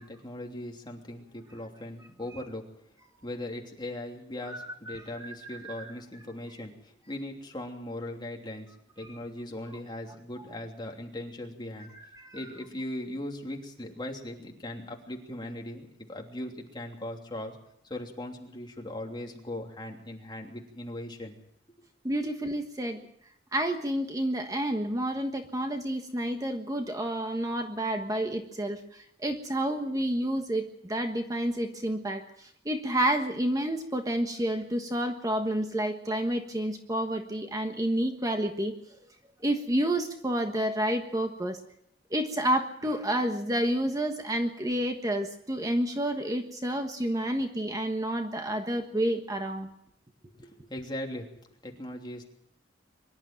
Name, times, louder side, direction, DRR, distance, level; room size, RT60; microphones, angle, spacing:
voice 1, 0.0-2.6 3.2-8.7 9.0-11.9 12.3-17.6 17.8-21.3 50.3-51.3 51.6-52.3, left 1 dB, 25° left, 1 dB, 3.1 m, -39 dB
voice 2, 5.4-5.8 12.1-12.4 22.0-23.0 23.5-38.7 39.4-41.6 42.1-49.7, right 1 dB, 20° right, 5 dB, 1.4 m, -29 dB
24.0 x 12.0 x 9.0 m, 0.73 s
head